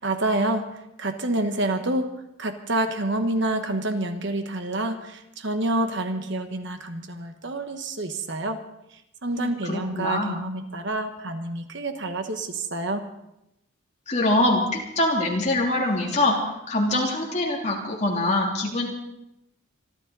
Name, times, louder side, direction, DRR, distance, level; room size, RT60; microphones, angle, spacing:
voice 1, 0.0-0.7 1.0-2.1 2.4-8.6 9.2-13.1, right 2 dB, 55° right, 7 dB, 1.3 m, -27 dB
voice 2, 9.3-10.4 14.1-16.4 16.7-18.9, left 1 dB, 35° left, -2 dB, 3.2 m, -24 dB
26.0 x 12.5 x 4.1 m, 0.85 s
head